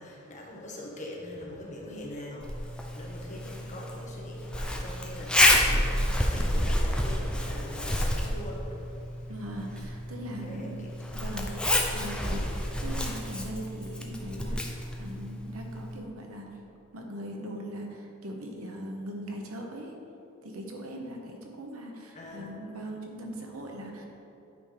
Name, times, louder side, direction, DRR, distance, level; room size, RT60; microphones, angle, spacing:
voice 1, 0.0-9.3 9.8-9.9 10.4-10.9 11.4-11.5 22.1-22.6, left 1 dB, 35° left, -2 dB, 1.2 m, -43 dB
Zipper (clothing), 2.4-16.0, left 1 dB, 5° left, 0.6 m, -29 dB
voice 2, 9.3-10.8 11.1-11.5 11.9-16.5 16.9-20.0 20.4-24.0, right 1 dB, 85° right, 1 dB, 1.0 m, -40 dB
8.7 x 3.6 x 5.0 m, 2.7 s
head